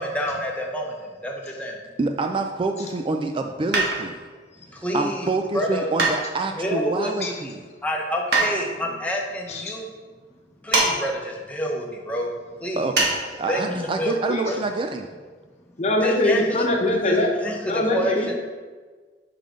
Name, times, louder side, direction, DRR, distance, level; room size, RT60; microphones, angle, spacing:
voice 1, 0.0-1.8 4.7-5.3 5.5-5.9 6.5-7.5 7.8-9.9 10.6-12.3 12.6-12.9 13.5-14.1 14.5-14.6 16.0-16.4 17.0-18.3, equal, 10° left, -1 dB, 1.0 m, -28 dB
voice 2, 2.0-4.1 4.9-7.6 12.8-15.1, right 3 dB, 30° right, 5 dB, 0.4 m, -27 dB
sound 1, 3.7-4.3 6.0-6.7 8.3-8.6 10.7-11.0 11.2-11.3 13.0-13.2 13.5-13.6, right 3 dB, 65° right, 1.5 m, -22 dB
voice 3, 15.8-17.3 17.6-18.3, left 1 dB, 40° left, 1 dB, 1.0 m, -22 dB
5.7 x 5.1 x 5.0 m, 1.4 s
head